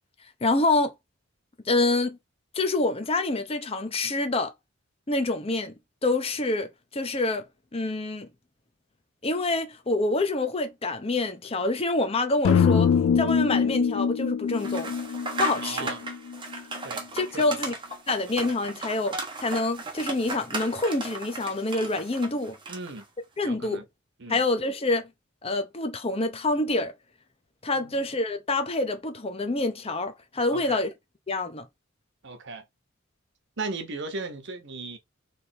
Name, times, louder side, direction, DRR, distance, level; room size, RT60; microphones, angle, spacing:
voice 1, 0.4-0.9 1.7-2.2 2.5-4.5 5.1-5.7 6.0-7.5 7.7-8.3 9.2-12.9 13.1-14.9 15.4-15.9 17.1-17.7 18.1-22.6 23.4-23.8 24.3-25.1 25.4-26.9 27.6-30.9 31.3-31.7, left 2 dB, 30° left, 0.7 m, -26 dB
sound 1, 12.4-16.6, left 7 dB, 70° left, 0.3 m, -24 dB
sound 2, 14.6-23.0, right 3 dB, 25° right, 1.1 m, -36 dB
voice 2, 15.6-16.0 16.8-17.0 17.3-17.6 22.7-23.0 23.4-23.8 24.2-24.4 27.7-28.0 30.5-30.8 32.2-32.6 33.6-35.0, right 3 dB, 60° right, 1.0 m, -36 dB
3.4 x 3.0 x 4.3 m
head